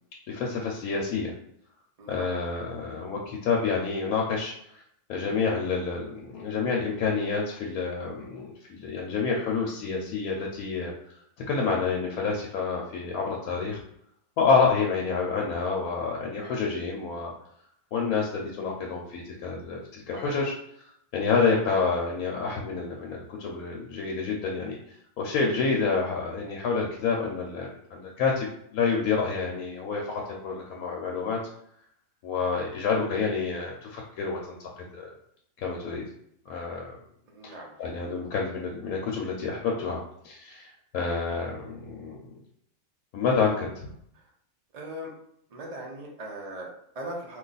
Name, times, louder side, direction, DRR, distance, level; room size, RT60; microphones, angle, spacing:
voice 1, 0.3-1.3 2.1-4.8 5.1-10.9 11.5-13.8 14.4-17.3 17.9-20.5 21.1-24.8 25.2-28.5 28.7-31.4 32.2-34.6 34.9-35.1 35.6-36.0 36.5-37.0 37.4-37.5 37.8-42.2 43.1-43.8, left 5 dB, 75° left, -1 dB, 1.0 m, -28 dB
voice 2, 2.0-2.3 20.1-20.4 37.3-38.0 44.1-44.3 44.7-45.1 45.5-47.4, right 1 dB, 40° right, -1 dB, 0.5 m, -40 dB
2.6 x 2.4 x 3.9 m, 0.71 s
omnidirectional pair, 1.5 m